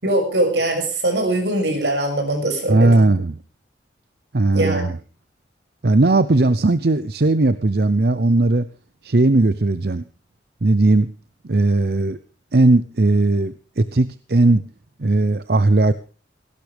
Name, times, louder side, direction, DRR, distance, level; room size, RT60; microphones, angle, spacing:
voice 1, 0.0-2.9 4.5-4.8, right 1 dB, 80° right, 4 dB, 6.6 m, -21 dB
voice 2, 2.7-3.4 4.3-5.0 5.8-8.7 9.0-10.0 10.6-11.1 11.4-12.2 12.5-14.7 15.0-15.9, right 2 dB, 60° right, 14 dB, 0.7 m, -17 dB
18.5 x 17.0 x 3.5 m, 0.36 s
head